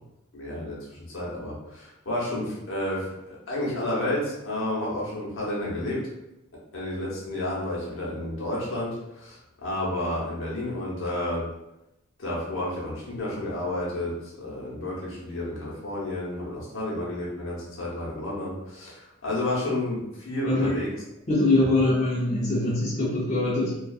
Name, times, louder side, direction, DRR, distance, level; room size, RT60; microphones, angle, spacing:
voice 1, 0.3-6.0 6.7-11.4 12.2-20.9, left 1 dB, 80° left, -5 dB, 0.8 m, -31 dB
voice 2, 21.3-23.8, left 2 dB, 35° left, -6 dB, 0.5 m, -23 dB
2.5 x 2.3 x 2.3 m, 0.90 s
head